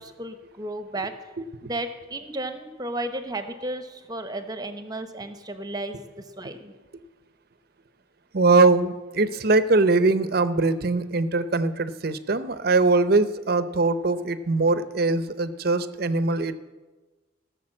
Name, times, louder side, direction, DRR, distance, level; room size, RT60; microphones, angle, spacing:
voice 1, 0.0-1.3 1.6-6.7, right 1 dB, 20° right, 8 dB, 1.0 m, -34 dB
voice 2, 1.4-1.7 8.3-16.6, right 3 dB, 55° right, 13 dB, 0.7 m, -22 dB
17.0 x 6.8 x 7.7 m, 1.2 s
head